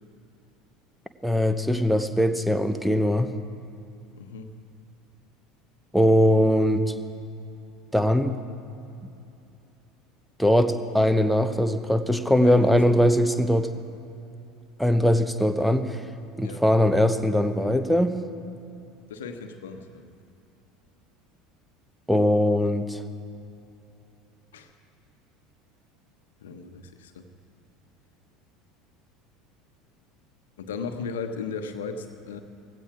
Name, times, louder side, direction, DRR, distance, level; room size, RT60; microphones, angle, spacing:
voice 1, 1.2-3.3 5.9-6.9 7.9-8.4 10.4-13.7 14.8-16.0 16.4-18.2 22.1-23.0, equal, ahead, 8 dB, 1.0 m, -21 dB
voice 2, 4.1-4.5 12.4-13.0 16.4-16.6 19.1-20.0 24.5-24.7 26.4-27.3 30.6-32.4, left 5 dB, 70° left, 7 dB, 1.2 m, -36 dB
18.0 x 16.0 x 4.8 m, 2.8 s
figure-of-eight pair, 70°, 0 cm